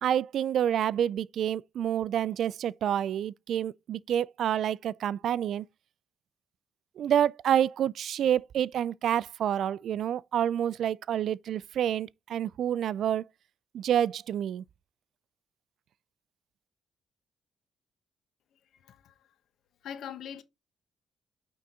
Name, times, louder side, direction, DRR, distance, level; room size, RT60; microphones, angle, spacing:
voice 1, 0.0-5.6 7.0-13.2 13.7-14.6, right 10 dB, 70° right, 0.3 m, -28 dB
voice 2, 18.8-19.1 19.8-20.4, left 9 dB, 70° left, 1.0 m, -41 dB
9.0 x 3.9 x 3.6 m
cardioid pair, 90°, 0 cm